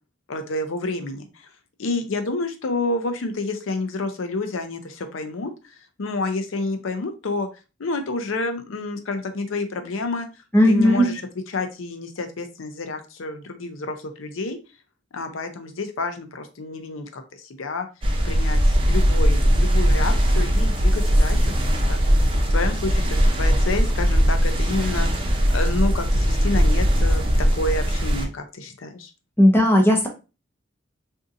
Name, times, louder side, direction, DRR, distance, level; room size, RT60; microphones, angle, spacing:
voice 1, 0.3-1.2 1.8-5.5 6.0-7.5 7.8-10.3 10.7-11.2 11.5-14.6 15.1-17.9 18.2-22.0 22.5-27.2 27.5-29.1, left 2 dB, 90° left, 7 dB, 0.6 m, -29 dB
voice 2, 10.5-11.1 29.4-30.1, equal, 10° left, 1 dB, 0.6 m, -16 dB
sound 1, 18.0-28.2, equal, 25° right, 0.6 m, -19 dB
3.7 x 2.7 x 2.5 m, 0.30 s
head